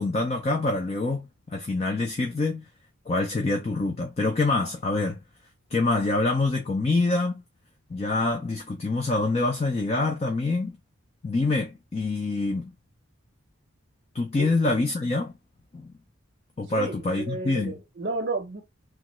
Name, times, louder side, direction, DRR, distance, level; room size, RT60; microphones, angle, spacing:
voice 1, 0.0-2.6 3.1-5.2 5.7-7.4 7.9-10.8 11.2-12.7 14.1-15.3 15.7-15.9 16.6-17.7, left 2 dB, 30° left, 0.4 m, -26 dB
voice 2, 16.7-18.6, right 3 dB, 45° right, 0.6 m, -32 dB
3.1 x 2.3 x 2.9 m
head